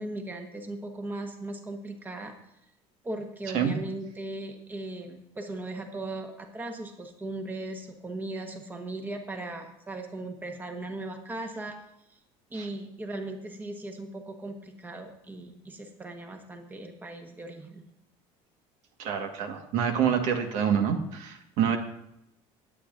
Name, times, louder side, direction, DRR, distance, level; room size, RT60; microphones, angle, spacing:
voice 1, 0.0-2.3 3.0-11.8 12.5-17.9, right 2 dB, 15° right, 4 dB, 1.2 m, -38 dB
voice 2, 19.0-21.8, right 8 dB, 70° right, 5 dB, 1.5 m, -27 dB
19.5 x 8.7 x 2.6 m, 0.83 s
cardioid pair, 135°, 13 cm